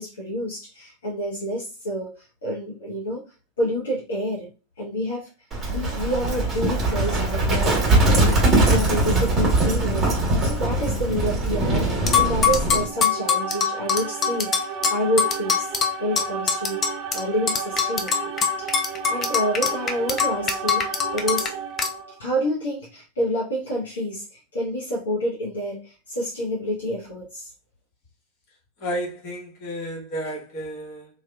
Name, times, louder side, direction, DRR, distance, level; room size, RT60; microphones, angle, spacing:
voice 1, 0.0-3.2 3.6-4.5 4.8-5.3 5.7-10.1 10.4-15.7 16.0-18.3 19.1-21.5 22.2-27.5, equal, 65° left, 0.8 m, -28 dB
Livestock farm animals working animals, 5.5-12.9, right 2 dB, 20° right, 1.2 m, -21 dB
sound 1, 12.1-17.2 17.5-21.5 21.8-21.9, left 7 dB, 25° left, 0.5 m, -22 dB
sound 2, 12.8-22.2, right 7 dB, 45° right, 0.3 m, -33 dB
voice 2, 28.8-31.1, equal, 40° left, 1.2 m, -32 dB
2.8 x 2.2 x 2.2 m
figure-of-eight pair, 90°, 0 cm